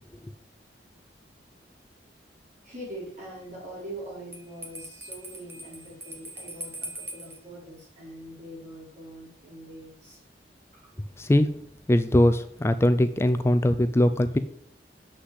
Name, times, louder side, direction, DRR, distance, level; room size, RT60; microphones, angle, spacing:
voice 1, 2.6-10.2 10.7-10.9, right 1 dB, 45° right, -6 dB, 4.9 m, -43 dB
Bell, 4.3-7.4, right 1 dB, 15° right, 1.4 m, -41 dB
voice 2, 11.2-11.5 11.9-14.4, left 1 dB, 15° left, 10 dB, 0.4 m, -21 dB
7.6 x 6.2 x 8.0 m, 0.70 s
head